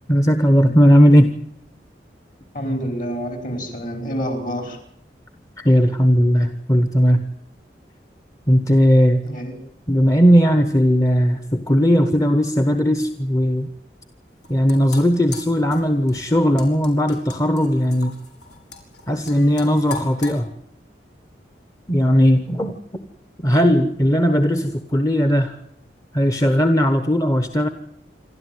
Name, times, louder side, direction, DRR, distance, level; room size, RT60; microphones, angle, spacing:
voice 1, 0.1-1.3 5.6-7.2 8.5-9.2 9.9-13.7 14.5-18.1 19.1-20.5 21.9-22.8 23.4-25.5 26.1-27.7, equal, 20° left, 8 dB, 1.1 m, -17 dB
voice 2, 2.5-4.8 9.2-9.6, equal, 50° left, 6 dB, 4.9 m, -27 dB
sound 1, 14.3-20.4, left 3 dB, 80° left, 5.1 m, -38 dB
27.0 x 13.0 x 9.4 m, 0.72 s
head